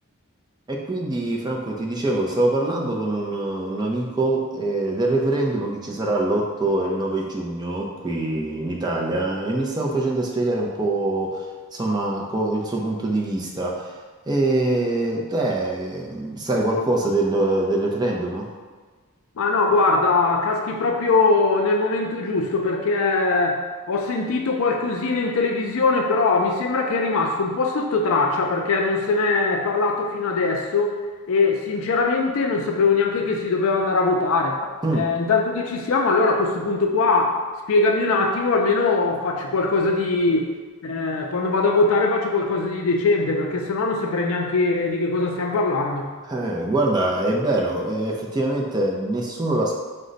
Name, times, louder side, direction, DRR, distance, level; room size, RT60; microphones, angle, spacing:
voice 1, 0.7-11.5 11.7-14.0 14.3-18.5 34.8-35.1 46.2-49.8, right 2 dB, 20° right, -2 dB, 0.4 m, -24 dB
voice 2, 19.4-31.0 31.3-34.6 34.9-37.4 37.7-40.5 40.8-46.1, left 3 dB, 65° left, 1 dB, 0.4 m, -21 dB
5.0 x 2.1 x 3.8 m, 1.4 s
head